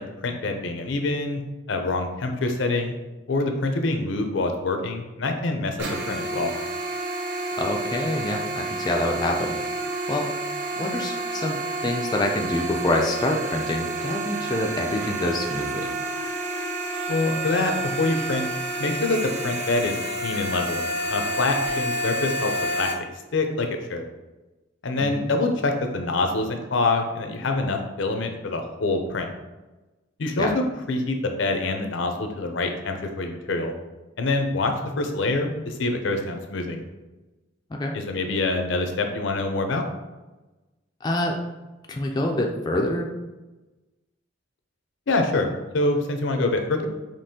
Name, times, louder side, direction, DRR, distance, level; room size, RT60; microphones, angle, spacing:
voice 1, 0.0-1.4 1.7-2.9 3.3-5.8 6.1-6.5 17.1-18.5 18.8-20.8 21.1-22.5 22.8-22.9 23.3-24.0 24.8-29.3 30.2-33.7 34.2-36.8 37.9-39.8 45.1-46.9, left 2 dB, 75° left, 5 dB, 0.6 m, -25 dB
sound 1, 5.8-22.9, right 1 dB, 65° right, 0.8 m, -29 dB
voice 2, 7.6-9.6 10.1-10.3 10.8-15.9 25.0-25.3 30.4-30.5 37.7-37.9 41.0-41.4 41.9-43.1, left 1 dB, 20° left, 1 dB, 0.4 m, -26 dB
5.2 x 2.9 x 2.8 m, 1.1 s
head